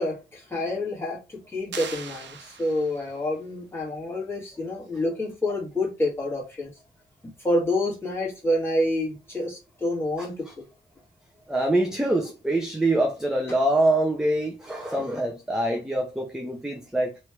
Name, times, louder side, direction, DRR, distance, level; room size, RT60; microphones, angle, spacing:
voice 1, 0.0-6.7 7.2-10.7, left 1 dB, 15° left, 1.8 m, -28 dB
sound 1, 1.7-3.2, right 6 dB, 80° right, 0.7 m, -40 dB
voice 2, 11.5-17.2, right 1 dB, 5° right, 0.5 m, -24 dB
3.2 x 3.0 x 4.6 m
wide cardioid pair, 175°, 18 cm